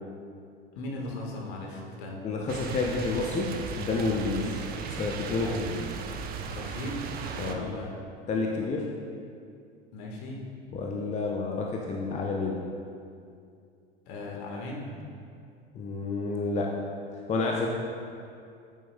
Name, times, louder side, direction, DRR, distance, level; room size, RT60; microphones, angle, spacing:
voice 1, 0.7-2.2 5.4-5.7 6.5-7.0 7.4-7.9 9.9-10.4 14.1-14.9, left 2 dB, 55° left, -1 dB, 1.5 m, -37 dB
voice 2, 2.2-4.5 5.0-5.9 7.4-7.6 8.3-8.9 10.7-12.6 15.7-16.8 17.3-17.7, left 3 dB, 20° left, 0 dB, 0.7 m, -29 dB
sound 1, 2.5-7.5, right 5 dB, 30° right, 0.6 m, -36 dB
10.0 x 7.5 x 2.2 m, 2.4 s
figure-of-eight pair, 75°, 31 cm